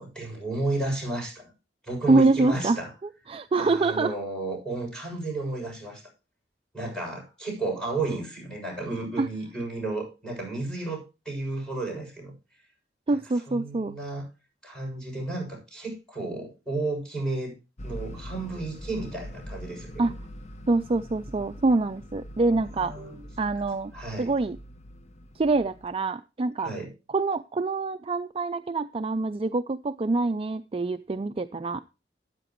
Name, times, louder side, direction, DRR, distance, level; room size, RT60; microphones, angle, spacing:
voice 1, 0.0-1.5 1.8-2.9 3.6-6.0 6.7-12.3 13.1-13.2 13.5-14.2 14.6-17.5 17.8-20.1 22.7-23.2 23.9-24.3 26.6-26.9, right 2 dB, 5° left, 6.9 m, -32 dB
voice 2, 2.1-2.8 3.3-4.1 9.2-9.3 13.1-13.9 20.0-20.1 20.7-22.9 23.4-23.9 24.2-24.6 25.4-26.7 27.1-31.8, right 3 dB, 30° right, 0.4 m, -25 dB
sound 1, 17.8-25.9, equal, 40° left, 0.8 m, -43 dB
13.0 x 9.9 x 3.1 m
head